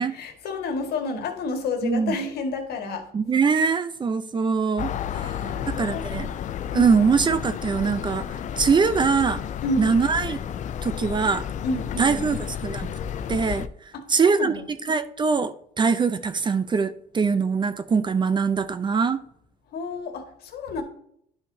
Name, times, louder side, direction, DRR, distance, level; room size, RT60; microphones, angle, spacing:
voice 1, 0.1-3.1 5.1-6.1 6.7-7.0 9.6-9.9 11.6-12.2 13.9-14.0 14.3-14.6 19.7-20.8, left 3 dB, 70° left, 4 dB, 1.7 m, -30 dB
voice 2, 1.8-2.2 3.1-6.3 6.7-9.4 9.8-10.4 10.8-11.5 12.0-12.9 13.3-13.7 14.1-14.5 14.9-19.2, right 5 dB, 25° right, 12 dB, 0.5 m, -23 dB
sound 1, 4.8-13.7, left 9 dB, 45° left, 0.5 m, -32 dB
11.0 x 5.7 x 2.7 m, 0.70 s
cardioid pair, 110°, 17 cm